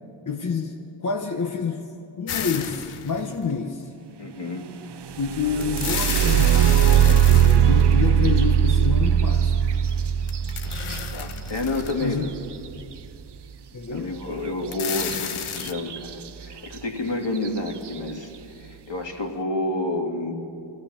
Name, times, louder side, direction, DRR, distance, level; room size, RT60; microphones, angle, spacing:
voice 1, 0.3-1.9 2.2-3.9 5.2-9.7 12.0-12.3 13.7-14.1, left 5 dB, 40° left, 3 dB, 1.1 m, -28 dB
sound 1, 2.3-3.5 5.6-8.3 10.3-12.2 12.7-12.8 14.6-15.7, left 8 dB, 80° left, 1.1 m, -32 dB
voice 2, 4.2-4.7 11.1-12.3 13.9-20.3, left 2 dB, 60° left, 1 dB, 2.8 m, -29 dB
sound 2, 5.1-12.9 15.0-15.1 15.6-16.1 16.7-16.8 17.4-17.7, right 8 dB, 55° right, 0.7 m, -20 dB
24.5 x 15.5 x 7.3 m, 2.6 s
wide cardioid pair, 90°, 50 cm